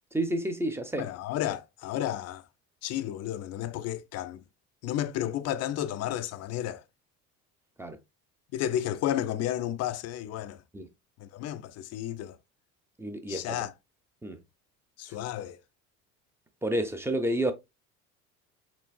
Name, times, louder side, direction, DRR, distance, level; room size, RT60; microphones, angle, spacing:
voice 1, 0.1-1.1 7.8-8.0 10.7-10.9 13.0-13.6 14.2-14.4 16.6-17.5, right 1 dB, 5° right, 0.6 m, -30 dB
voice 2, 1.0-2.5 2.8-4.4 4.8-6.8 8.5-10.6 11.2-12.4 13.3-13.7 15.0-15.6, left 12 dB, 35° left, 0.5 m, -32 dB
6.0 x 3.1 x 2.3 m
figure-of-eight pair, 60°, 45 cm